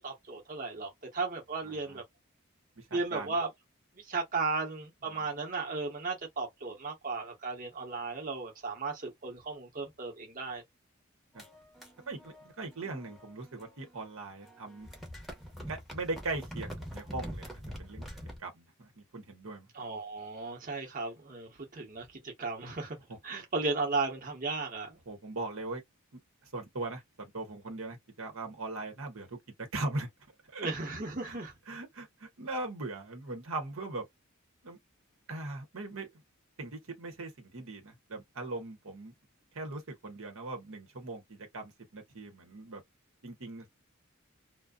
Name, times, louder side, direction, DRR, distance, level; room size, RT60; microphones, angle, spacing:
voice 1, 0.0-2.0 2.9-3.5 4.0-10.6 19.7-23.0 23.2-25.0 30.6-31.5, right 3 dB, 40° right, 1.0 m, -35 dB
voice 2, 1.6-2.0 2.8-3.3 5.1-5.2 11.3-11.4 12.1-14.9 15.7-18.0 18.4-19.7 23.1-23.2 25.1-25.8 26.4-30.1 30.5-30.7 31.2-31.4 31.7-34.1 34.6-34.8 35.3-36.1 36.6-39.1 39.5-42.8 43.2-43.8, right 2 dB, 80° right, 1.0 m, -40 dB
sound 1, 11.3-14.0 14.3-18.4, equal, ahead, 0.8 m, -45 dB
2.5 x 2.2 x 2.3 m
head